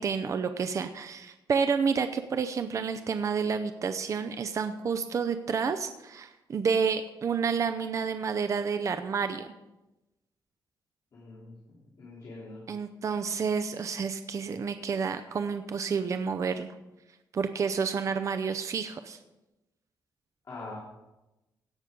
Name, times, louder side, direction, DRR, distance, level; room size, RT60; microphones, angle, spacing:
voice 1, 0.0-9.5 12.7-16.7 17.3-19.2, right 6 dB, 40° right, 9 dB, 0.6 m, -30 dB
voice 2, 11.1-12.6 20.5-20.8, left 2 dB, 45° left, -7 dB, 3.6 m, -44 dB
17.0 x 6.3 x 5.3 m, 0.99 s
cardioid pair, 140°, 8 cm